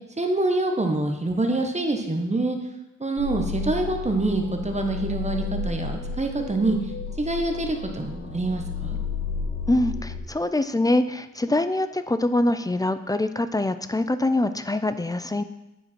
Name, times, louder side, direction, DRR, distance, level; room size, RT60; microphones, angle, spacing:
voice 1, 0.2-2.6 3.0-6.8 7.2-9.0, right 2 dB, 20° right, 4 dB, 1.0 m, -25 dB
sound 1, 3.2-10.2, left 5 dB, 80° left, 2.0 m, -32 dB
voice 2, 9.7-15.4, left 2 dB, 10° left, 11 dB, 0.3 m, -24 dB
9.1 x 4.6 x 4.3 m, 0.94 s
cardioid pair, 85°, 32 cm